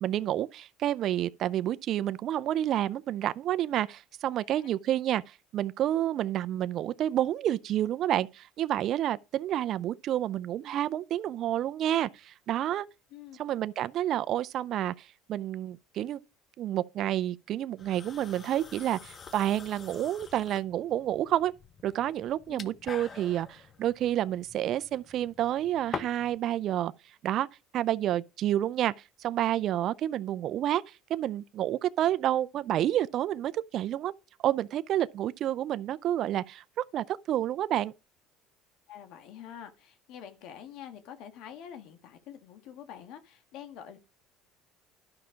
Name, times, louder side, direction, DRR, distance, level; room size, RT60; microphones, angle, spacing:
voice 1, 0.0-12.9 13.4-16.2 16.6-21.5 21.8-26.9 27.2-27.5 27.7-28.9 29.2-34.1 34.4-37.9, right 12 dB, 55° right, 0.5 m, -29 dB
sound 1, 17.8-26.4, left 5 dB, 35° left, 1.0 m, -45 dB
voice 2, 38.9-44.0, left 9 dB, 70° left, 1.7 m, -46 dB
11.5 x 5.8 x 5.0 m
supercardioid pair, 110°, 0 cm